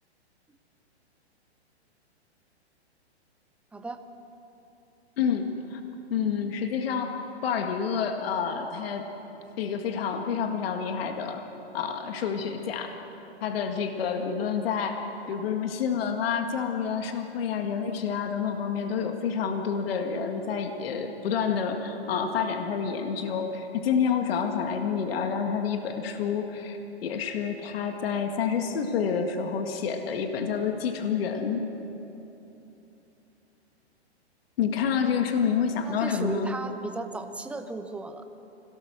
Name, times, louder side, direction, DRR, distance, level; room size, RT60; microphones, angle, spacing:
voice 1, 5.2-5.8 6.1-9.1 9.6-11.4 11.7-13.0 13.4-31.7 34.6-36.5, left 6 dB, 60° left, 5 dB, 1.9 m, -28 dB
voice 2, 35.8-38.2, right 3 dB, 5° right, 7 dB, 0.7 m, -35 dB
25.5 x 18.0 x 6.6 m, 3.0 s
hypercardioid pair, 140°, 34 cm